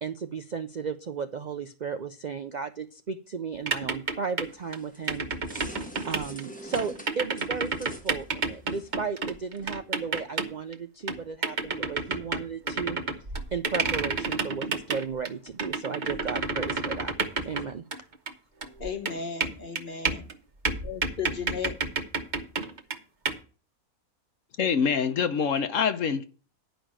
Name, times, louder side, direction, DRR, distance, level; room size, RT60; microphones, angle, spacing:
voice 1, 0.0-5.3 6.1-13.0 13.5-17.1 17.4-17.8, right 5 dB, 85° right, 0.4 m, -34 dB
sound 1, 3.5-4.8 5.1-6.4 6.7-10.7 11.1-18.3 18.6-20.3 20.6-23.0 23.3-23.4, right 3 dB, 35° right, 1.0 m, -30 dB
sound 2, 4.4-9.7, equal, 5° left, 0.8 m, -47 dB
voice 2, 18.8-20.3 20.8-21.7, left 6 dB, 40° left, 1.1 m, -35 dB
voice 3, 24.6-26.2, left 6 dB, 60° left, 1.1 m, -25 dB
10.0 x 5.2 x 7.4 m
omnidirectional pair, 1.6 m